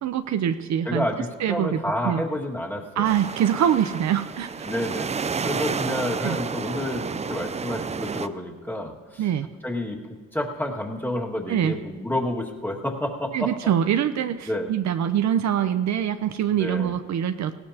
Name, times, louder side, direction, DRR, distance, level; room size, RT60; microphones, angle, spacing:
voice 1, 0.0-1.1 1.4-1.8 2.0-2.2 3.0-4.5 6.2-6.4 9.2-9.5 11.5-11.7 13.3-17.6, right 9 dB, 65° right, 9 dB, 0.7 m, -24 dB
voice 2, 0.9-3.1 4.6-5.1 5.4-9.3 9.6-10.0 10.3-13.7 14.4-14.7 16.6-17.0, left 1 dB, 5° left, -1 dB, 1.9 m, -29 dB
sound 1, 3.0-8.3, right 5 dB, 20° right, 0.4 m, -30 dB
19.0 x 17.0 x 2.9 m, 1.4 s
cardioid pair, 90°, 30 cm